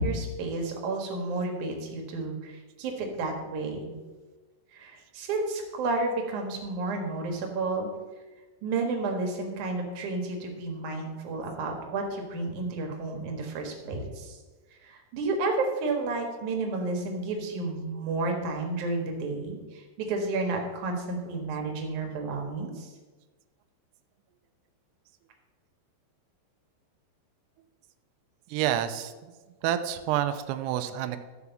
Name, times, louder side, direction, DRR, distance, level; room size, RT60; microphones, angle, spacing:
voice 1, 0.0-4.0 4.7-7.9 8.6-14.4 14.8-22.9, right 3 dB, 60° right, 2 dB, 2.1 m, -31 dB
voice 2, 28.5-29.3 29.6-31.2, right 11 dB, 85° right, 8 dB, 2.4 m, -28 dB
12.5 x 4.8 x 7.0 m, 1.3 s
omnidirectional pair, 5.5 m